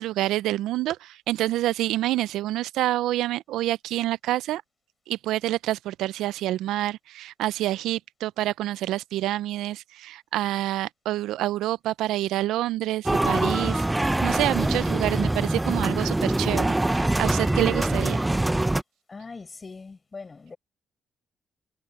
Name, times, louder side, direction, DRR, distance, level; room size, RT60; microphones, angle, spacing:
voice 1, 0.0-4.6 5.1-18.2, right 15 dB, 90° right, 0.4 m, -27 dB
sound 1, 13.1-18.8, right 2 dB, 10° right, 0.5 m, -24 dB
voice 2, 19.1-20.6, left 4 dB, 30° left, 6.3 m, -41 dB
cardioid pair, 90°, 0 cm